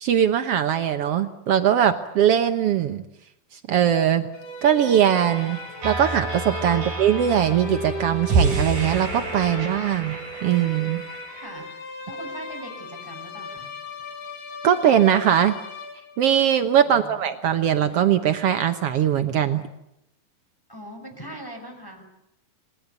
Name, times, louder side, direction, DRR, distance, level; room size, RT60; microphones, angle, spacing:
voice 1, 0.0-3.0 3.7-4.2 4.6-5.6 5.8-11.0 14.6-15.6 16.2-19.6, right 9 dB, 85° right, 8 dB, 1.3 m, -21 dB
sound 1, 4.3-16.4, left 2 dB, 80° left, 5.7 m, -37 dB
sound 2, 5.3-11.5, right 4 dB, 60° right, 8.0 m, -29 dB
voice 2, 11.4-13.7 16.8-17.3 20.7-22.1, right 1 dB, 5° left, 4 dB, 5.7 m, -41 dB
28.0 x 20.5 x 8.2 m, 0.86 s
omnidirectional pair, 4.4 m